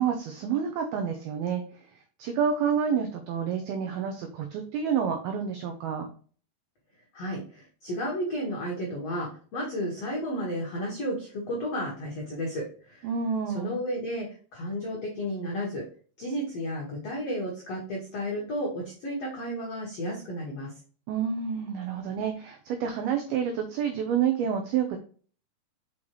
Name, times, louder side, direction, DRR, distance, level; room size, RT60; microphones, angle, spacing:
voice 1, 0.0-1.6 2.2-6.1 13.0-13.7 21.1-25.0, right 7 dB, 85° right, 5 dB, 2.1 m, -28 dB
voice 2, 7.1-13.1 13.5-14.3 14.5-15.8 16.2-20.7, equal, 90° left, -3 dB, 1.4 m, -32 dB
6.3 x 5.5 x 3.1 m, 0.41 s
omnidirectional pair, 5.4 m